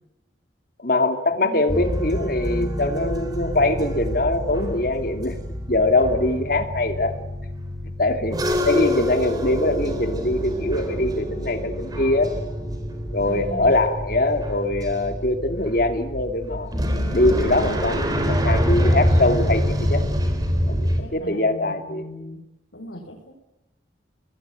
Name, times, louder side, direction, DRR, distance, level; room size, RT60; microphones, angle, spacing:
voice 1, 0.8-5.4 5.7-7.1 8.0-12.3 13.1-16.7 17.1-19.6 19.9-20.0 20.7-22.1, left 2 dB, 50° left, 7 dB, 2.7 m, -22 dB
voice 2, 1.3-1.9 13.2-13.8 21.0-22.4 22.7-23.2, left 1 dB, 85° left, -2 dB, 5.5 m, -37 dB
sound 1, 1.7-21.0, equal, 20° right, 3.7 m, -26 dB
25.5 x 20.5 x 9.4 m, 0.92 s
head